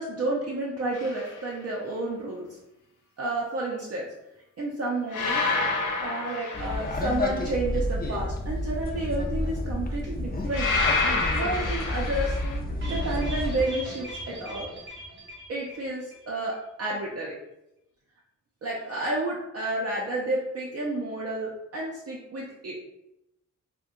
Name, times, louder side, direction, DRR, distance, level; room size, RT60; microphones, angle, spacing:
voice 1, 0.0-2.6 3.2-4.0 4.6-5.4 6.0-10.7 11.3-12.4 12.9-14.7 15.5-17.4 18.6-22.7, right 2 dB, 55° right, -4 dB, 0.5 m, -31 dB
sound 1, 0.9-1.3 5.1-7.3 10.5-12.6, left 3 dB, 90° left, 0.6 m, -28 dB
sound 2, 6.5-13.6, left 1 dB, 30° left, 0.4 m, -30 dB
sound 3, 12.8-16.3 16.5-16.6 16.9-17.0, equal, 35° right, 0.9 m, -40 dB
2.6 x 2.2 x 3.6 m, 0.88 s
wide cardioid pair, 140°, 31 cm